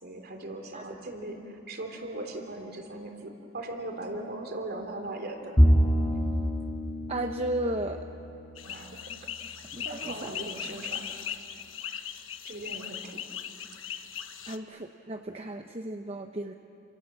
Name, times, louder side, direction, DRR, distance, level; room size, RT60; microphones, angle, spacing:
voice 1, 0.0-5.6 8.7-9.0 9.8-11.1 12.4-13.3, right 2 dB, 50° right, 3 dB, 3.4 m, -39 dB
Bowed string instrument, 5.6-9.1, equal, 15° left, 2.2 m, -26 dB
voice 2, 7.1-8.0 9.7-10.4 14.5-16.5, right 1 dB, 30° right, 5 dB, 0.9 m, -34 dB
sound 1, 8.6-14.6, left 9 dB, 80° left, 1.3 m, -39 dB
28.5 x 27.5 x 7.6 m, 2.8 s
head